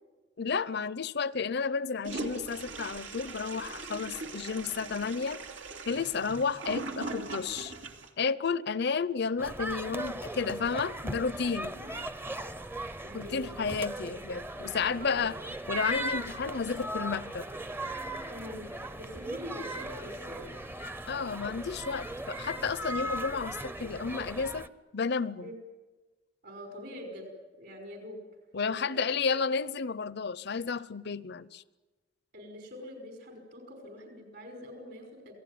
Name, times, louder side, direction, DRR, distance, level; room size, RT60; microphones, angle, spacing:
voice 1, 0.4-5.4 5.9-7.7 8.2-11.8 13.1-15.4 15.7-17.5 21.1-24.7 24.9-25.5 28.5-31.6, left 5 dB, 60° left, 18 dB, 0.7 m, -32 dB
Toilet flush, 2.0-8.1, right 3 dB, 85° right, 2.7 m, -40 dB
sound 1, 9.4-24.7, right 1 dB, 10° right, 0.7 m, -38 dB
voice 2, 13.0-14.1 14.6-15.3 18.2-20.5 25.4-25.5 26.4-27.3 27.6-28.2 28.7-29.2 32.3-35.4, left 1 dB, 60° right, 4 dB, 5.6 m, -45 dB
27.5 x 18.0 x 9.4 m, 1.3 s
head